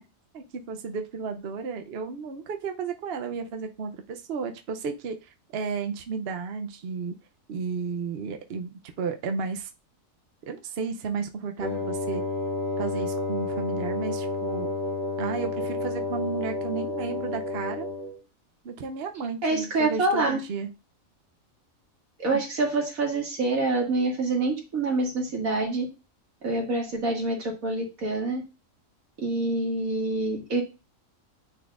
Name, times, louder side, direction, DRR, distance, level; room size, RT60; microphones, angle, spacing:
voice 1, 0.3-7.1 7.5-8.7 9.0-9.7 10.5-12.2 12.8-14.7 15.2-17.9 18.6-20.7, right 5 dB, 55° right, 6 dB, 0.8 m, -33 dB
Wind instrument woodwind instrument, 11.6-18.2, left 2 dB, 45° left, 3.1 m, -30 dB
voice 2, 19.4-20.4 22.2-25.9 26.4-28.4 29.2-30.6, right 2 dB, 85° right, -1 dB, 2.4 m, -26 dB
9.4 x 4.2 x 2.5 m, 0.29 s
omnidirectional pair, 1.4 m